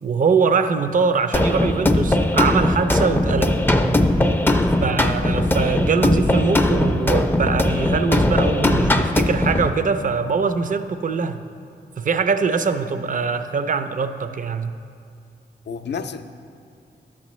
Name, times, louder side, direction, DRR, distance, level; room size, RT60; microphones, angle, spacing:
voice 1, 0.0-3.5 4.8-11.4 12.0-14.7, right 5 dB, 45° right, 10 dB, 0.4 m, -22 dB
sound 1, 1.3-9.7, left 1 dB, 10° left, 0.4 m, -19 dB
voice 2, 4.5-4.9 15.7-16.2, left 6 dB, 70° left, 9 dB, 0.4 m, -32 dB
11.5 x 7.3 x 3.1 m, 2.4 s
cardioid pair, 65°, 19 cm